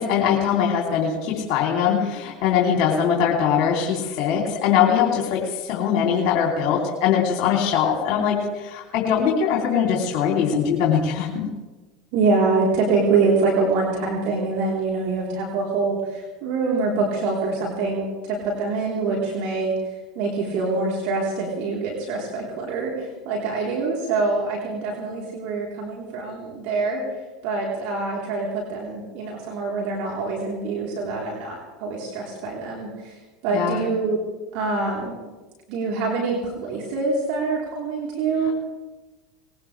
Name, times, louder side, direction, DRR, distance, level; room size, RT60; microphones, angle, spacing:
voice 1, 0.0-11.5 33.5-33.8 38.4-38.5, left 7 dB, 50° left, -2 dB, 3.3 m, -22 dB
voice 2, 12.1-19.7 20.2-27.0 27.4-33.2 33.4-34.2 34.5-35.1 35.7-38.5, right 3 dB, 60° right, -3 dB, 3.8 m, -25 dB
20.0 x 18.5 x 3.4 m, 1.2 s
hypercardioid pair, 85°, 2 cm